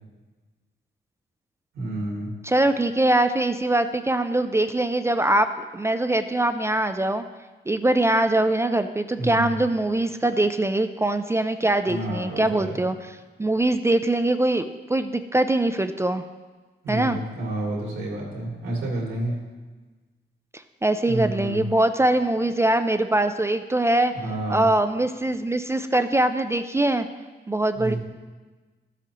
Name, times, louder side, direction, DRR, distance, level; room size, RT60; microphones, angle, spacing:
voice 1, 1.7-2.3 9.2-9.6 11.9-12.8 16.8-19.4 21.1-21.6 24.1-24.6 27.7-28.0, right 1 dB, 85° right, -4 dB, 2.6 m, -29 dB
voice 2, 2.4-5.5 5.7-7.3 7.7-13.0 13.4-16.2 16.9-17.2 20.5-24.1 24.5-27.1 27.5-27.9, right 1 dB, 15° right, 9 dB, 0.3 m, -22 dB
12.5 x 8.0 x 2.9 m, 1.3 s
cardioid pair, 125°, 20 cm